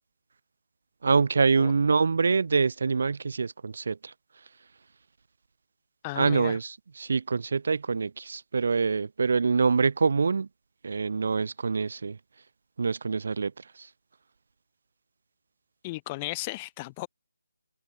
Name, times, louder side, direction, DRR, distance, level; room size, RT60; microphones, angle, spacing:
voice 1, 1.0-4.1 6.1-10.5 10.8-12.2 12.8-13.9, right 5 dB, 50° right, 5.9 m, -25 dB
voice 2, 6.0-6.6 15.8-17.1, left 21 dB, 15° left, 4.9 m, -35 dB
figure-of-eight pair, 170°, 0 cm